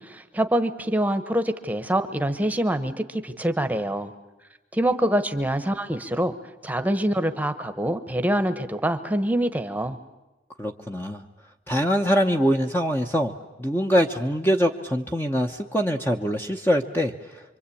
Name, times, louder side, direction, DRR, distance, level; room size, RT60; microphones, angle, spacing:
voice 1, 0.0-4.1 4.7-6.3 6.6-10.0, right 1 dB, 10° right, 9 dB, 1.1 m, -25 dB
voice 2, 10.6-11.2 11.7-13.3 13.6-17.1, equal, 10° left, 3 dB, 0.9 m, -23 dB
26.0 x 24.5 x 8.6 m, 1.0 s
head